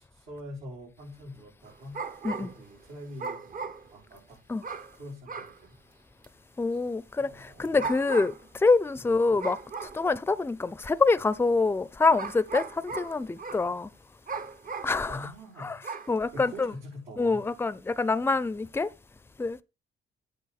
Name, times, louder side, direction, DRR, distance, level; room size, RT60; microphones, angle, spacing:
voice 1, 0.0-2.0 2.4-4.4 5.0-5.6 7.2-7.9 9.0-9.4 15.1-15.8 16.3-17.5, equal, 90° right, 4.5 m, -44 dB
sound 1, 1.7-2.7 3.2-4.2 4.6-5.0 5.3-5.6 6.2-6.3 7.6-8.5 9.4-10.1 10.9-11.0 12.1-13.7 14.3-15.0 15.8-16.1, right 5 dB, 45° right, 0.8 m, -37 dB
voice 2, 6.6-9.6 9.9-13.9 14.8-15.3 15.6-15.8 16.1-16.7 17.2-18.9 19.4-19.6, left 3 dB, 10° left, 0.5 m, -26 dB
8.4 x 4.5 x 6.4 m
cardioid pair, 90°, 20 cm